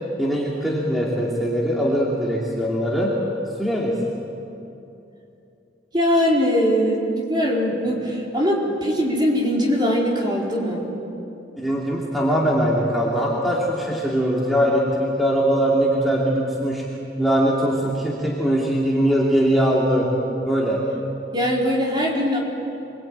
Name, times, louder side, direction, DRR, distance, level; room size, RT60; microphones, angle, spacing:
voice 1, 0.2-3.1 3.6-3.9 11.6-16.8 17.2-20.1 20.5-20.8, equal, ahead, -4 dB, 2.9 m, -21 dB
voice 2, 5.9-10.9 21.3-22.4, equal, 25° right, -2 dB, 4.3 m, -21 dB
27.0 x 22.0 x 9.0 m, 2.8 s
head